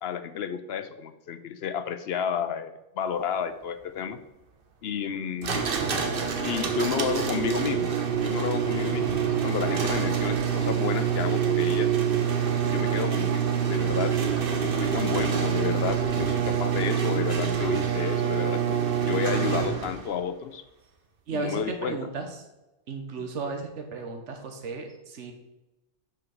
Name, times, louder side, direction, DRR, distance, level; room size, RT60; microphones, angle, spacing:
voice 1, 0.0-4.2 4.8-5.6 6.4-11.9 12.7-14.2 14.6-20.6 21.3-22.0, left 7 dB, 65° left, 11 dB, 0.8 m, -31 dB
sound 1, 5.4-20.1, right 8 dB, 50° right, 1.0 m, -26 dB
voice 2, 21.3-22.3 22.9-25.3, right 4 dB, 75° right, 4 dB, 1.3 m, -34 dB
5.9 x 4.8 x 6.4 m, 0.97 s
omnidirectional pair, 1.2 m